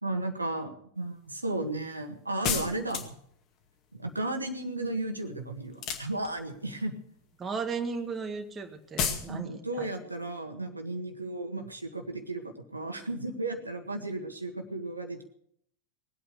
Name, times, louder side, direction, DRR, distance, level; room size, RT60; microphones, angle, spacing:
voice 1, 0.0-3.1 3.9-6.9 9.3-15.2, right 2 dB, 80° right, 5 dB, 1.7 m, -34 dB
sound 1, 2.4-3.3 5.7-6.6 9.0-9.3, left 7 dB, 40° left, 2.2 m, -31 dB
voice 2, 7.4-9.9, right 5 dB, 20° right, 5 dB, 1.8 m, -35 dB
21.0 x 8.6 x 6.8 m, 0.67 s
figure-of-eight pair, 90°, 0 cm